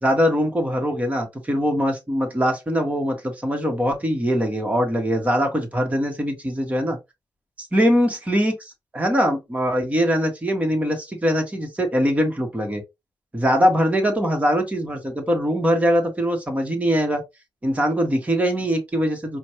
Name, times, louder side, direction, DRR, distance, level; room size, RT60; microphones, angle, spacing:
voice 1, 0.0-7.0 7.6-8.5 8.9-12.8 13.3-17.2 17.6-19.4, equal, 15° right, 1.4 m, -22 dB
5.0 x 2.3 x 3.0 m
cardioid pair, 105°, 8 cm